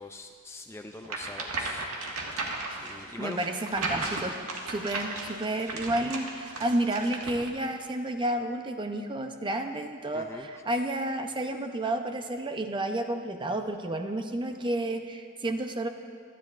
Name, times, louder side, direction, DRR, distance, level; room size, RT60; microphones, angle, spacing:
voice 1, 0.0-1.9 2.4-3.4 6.0-6.1 10.1-10.5, left 2 dB, 10° left, 4 dB, 0.4 m, -43 dB
sound 1, 1.0-7.5, right 3 dB, 85° right, 1.7 m, -35 dB
voice 2, 3.2-4.4 4.7-15.9, right 1 dB, 20° right, 6 dB, 0.7 m, -31 dB
28.0 x 10.5 x 2.5 m, 2.4 s
head